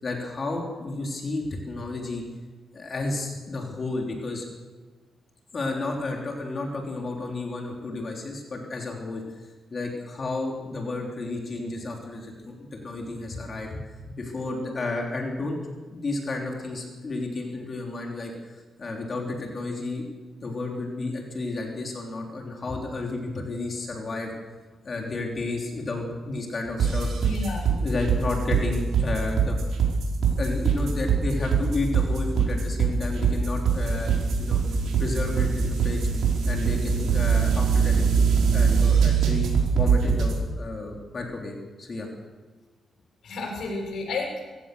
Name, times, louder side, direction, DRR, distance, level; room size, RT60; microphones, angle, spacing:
voice 1, 0.0-2.2 2.7-4.5 5.5-13.8 14.1-15.6 15.9-20.0 20.4-24.3 24.8-27.1 27.8-29.6 30.4-34.6 35.0-36.1 36.4-38.3 38.5-42.1, left 2 dB, 30° left, 0 dB, 3.5 m, -32 dB
sound 1, 26.8-40.4, right 6 dB, 80° right, 5.1 m, -22 dB
voice 2, 27.2-27.7 43.2-44.5, left 3 dB, 65° left, 0 dB, 6.9 m, -31 dB
25.5 x 15.5 x 6.8 m, 1.4 s
wide cardioid pair, 165°, 0 cm